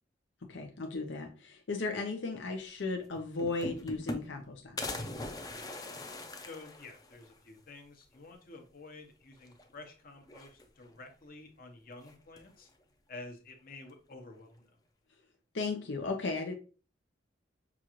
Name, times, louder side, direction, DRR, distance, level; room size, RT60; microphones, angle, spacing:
voice 1, 0.5-4.8 15.5-16.5, left 3 dB, 75° left, 3 dB, 0.6 m, -35 dB
sound 1, 2.8-2.9 3.1-4.5 4.8-7.4 7.8-7.9 8.1-8.2 9.4-9.9 10.2-11.0 12.0-12.6, left 2 dB, 20° left, 0.5 m, -41 dB
voice 2, 6.4-12.7 13.1-14.8, left 2 dB, 55° left, 4 dB, 0.9 m, -50 dB
5.9 x 2.5 x 3.0 m, 0.36 s
head